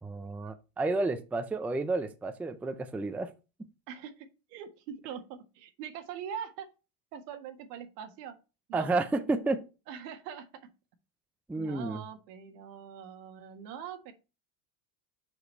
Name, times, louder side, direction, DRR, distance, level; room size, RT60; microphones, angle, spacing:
voice 1, 0.0-3.3 8.7-9.6 11.5-12.0, right 3 dB, 5° right, 9 dB, 0.4 m, -31 dB
voice 2, 3.9-6.7 7.1-8.4 8.7-8.9 9.9-10.7 11.6-14.1, right 8 dB, 85° right, 6 dB, 1.8 m, -43 dB
7.0 x 4.9 x 4.4 m, 0.30 s
supercardioid pair, 125°, 47 cm